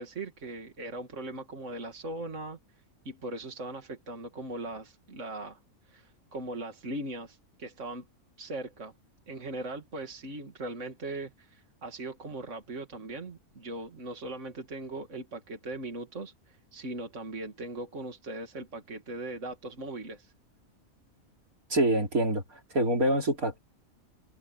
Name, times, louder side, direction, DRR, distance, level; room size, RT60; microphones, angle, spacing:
voice 1, 0.0-2.6 3.0-5.6 5.9-8.1 8.4-8.9 9.3-20.3, right 2 dB, 60° right, 2.7 m, -39 dB
voice 2, 21.7-23.6, right 1 dB, 80° right, 4.4 m, -26 dB
open air
omnidirectional pair, 1.5 m